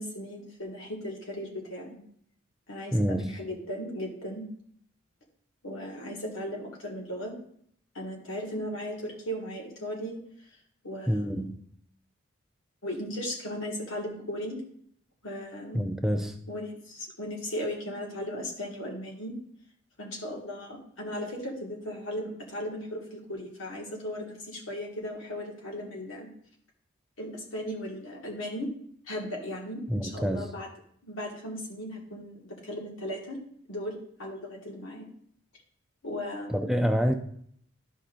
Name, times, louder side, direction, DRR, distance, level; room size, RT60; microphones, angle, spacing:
voice 1, 0.0-2.0 2.7-4.4 5.6-7.3 8.0-10.2 10.8-11.5 12.8-14.6 15.2-15.8 16.5-19.3 20.0-26.3 27.2-28.7 29.1-30.7 31.0-33.4 33.7-35.1 36.0-36.9, equal, 80° left, -1 dB, 1.7 m, -37 dB
voice 2, 2.9-3.3 11.1-11.6 15.7-16.4 29.9-30.5 36.5-37.1, equal, ahead, 5 dB, 0.3 m, -27 dB
11.5 x 5.5 x 2.5 m, 0.66 s
head